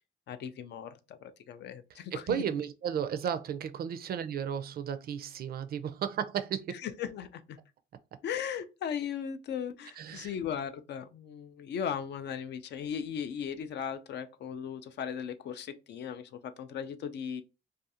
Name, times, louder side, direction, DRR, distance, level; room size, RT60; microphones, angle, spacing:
voice 1, 0.3-2.5 6.7-7.6 8.2-17.4, left 8 dB, 60° left, 0.4 m, -37 dB
voice 2, 1.9-6.8 10.0-10.3, right 8 dB, 50° right, 0.4 m, -34 dB
2.4 x 2.3 x 2.7 m
cardioid pair, 90°, 20 cm